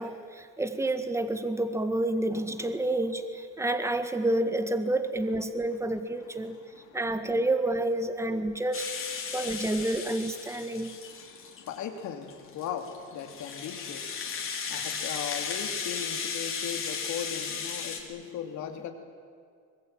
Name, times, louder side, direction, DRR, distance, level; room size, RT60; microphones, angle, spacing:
voice 1, 0.0-6.6 6.9-8.9 9.3-10.9, right 1 dB, 10° right, 9 dB, 1.9 m, -29 dB
voice 2, 6.4-7.0 9.2-9.5 10.5-18.9, left 8 dB, 75° left, 5 dB, 3.1 m, -39 dB
Rattle (instrument), 8.7-11.8 12.3-18.0, left 6 dB, 45° left, 3.9 m, -35 dB
25.0 x 20.5 x 9.1 m, 2.2 s
cardioid pair, 110°, 29 cm